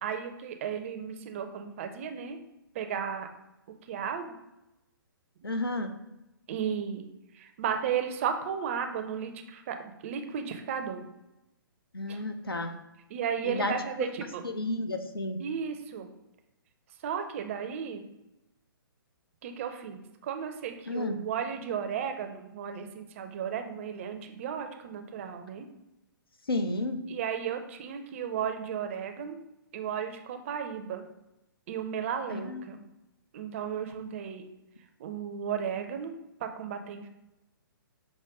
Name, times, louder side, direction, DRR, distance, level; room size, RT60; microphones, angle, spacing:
voice 1, 0.0-2.4 2.7-3.3 3.9-4.4 6.5-7.1 7.3-11.0 12.1-12.2 13.1-14.4 15.4-16.1 17.0-18.0 19.4-25.7 27.1-29.4 29.7-31.1 31.7-32.8 33.3-34.5 35.0-36.1 36.4-37.1, right 7 dB, 35° right, 6 dB, 0.5 m, -34 dB
voice 2, 5.4-5.9 11.9-12.7 13.4-13.7 14.0-14.1 14.4-15.4 20.9-21.2 26.5-27.0 32.3-32.6, left 2 dB, 80° left, 7 dB, 0.7 m, -31 dB
6.0 x 2.1 x 3.6 m, 0.93 s
figure-of-eight pair, 125°, 12 cm